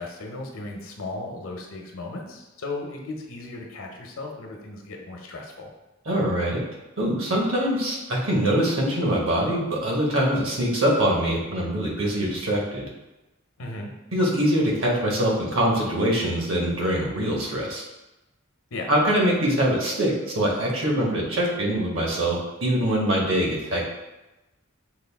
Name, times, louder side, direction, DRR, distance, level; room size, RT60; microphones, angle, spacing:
voice 1, 0.0-5.7 13.6-13.9 18.7-18.9, left 2 dB, 80° left, 1 dB, 0.8 m, -36 dB
voice 2, 6.1-6.6 7.0-12.9 14.1-17.8 18.9-23.8, right 1 dB, 70° right, -2 dB, 1.2 m, -23 dB
6.3 x 2.4 x 3.4 m, 1.0 s
head